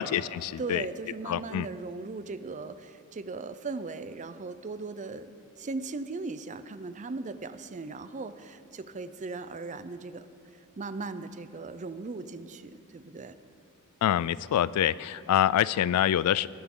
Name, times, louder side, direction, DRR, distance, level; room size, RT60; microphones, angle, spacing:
voice 1, 0.0-0.8 1.3-1.7 14.0-16.5, left 10 dB, 80° left, 18 dB, 0.3 m, -26 dB
voice 2, 0.6-5.3 5.6-10.3 10.8-13.3, right 3 dB, 35° right, 12 dB, 0.5 m, -38 dB
19.0 x 11.0 x 3.8 m, 2.5 s
head